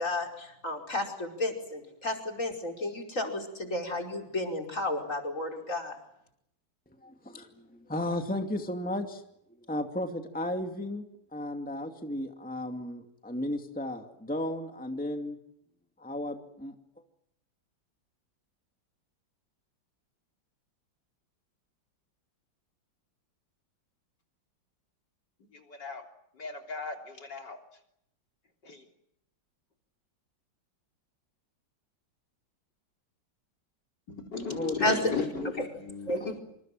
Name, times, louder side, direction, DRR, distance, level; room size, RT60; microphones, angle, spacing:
voice 1, 0.0-6.0 34.8-35.1 35.6-35.7 36.0-36.4, left 1 dB, 40° left, 3 dB, 5.5 m, -32 dB
voice 2, 6.9-9.2 9.5-15.4 16.0-16.7 34.4-35.5, left 1 dB, 5° left, 4 dB, 2.3 m, -35 dB
voice 3, 25.7-26.0 26.4-27.6 28.6-28.8 34.1-35.2 35.6-36.4, left 4 dB, 60° left, 3 dB, 4.1 m, -35 dB
27.5 x 27.5 x 7.7 m, 0.78 s
omnidirectional pair, 2.1 m